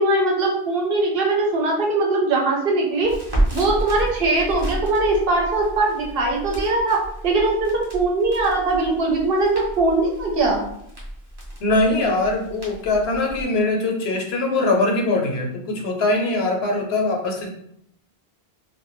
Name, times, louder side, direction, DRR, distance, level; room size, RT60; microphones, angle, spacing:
voice 1, 0.0-3.1 3.5-10.6, right 2 dB, 65° right, -1 dB, 0.8 m, -21 dB
Crackle, 3.0-13.4, right 1 dB, 25° right, 0.7 m, -31 dB
voice 2, 11.6-17.5, left 2 dB, 75° left, 1 dB, 0.8 m, -22 dB
2.1 x 2.1 x 3.0 m, 0.73 s
omnidirectional pair, 1.1 m